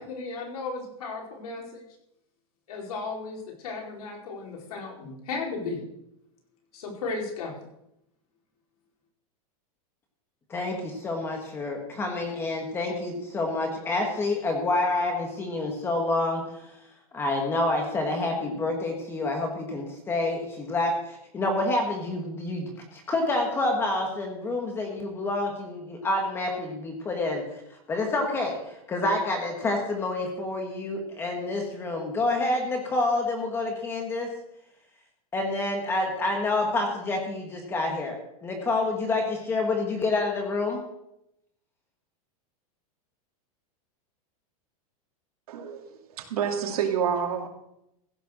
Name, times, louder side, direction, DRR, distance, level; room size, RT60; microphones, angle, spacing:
voice 1, 0.0-1.8 2.7-5.8 6.7-7.6, left 4 dB, 85° left, -1 dB, 4.7 m, -35 dB
voice 2, 10.5-16.4 17.1-27.4 27.9-34.3 35.3-40.8, left 2 dB, 15° left, 3 dB, 1.4 m, -28 dB
voice 3, 45.5-47.5, right 7 dB, 85° right, 3 dB, 2.5 m, -28 dB
15.5 x 6.8 x 6.4 m, 0.82 s
supercardioid pair, 175°, 19 cm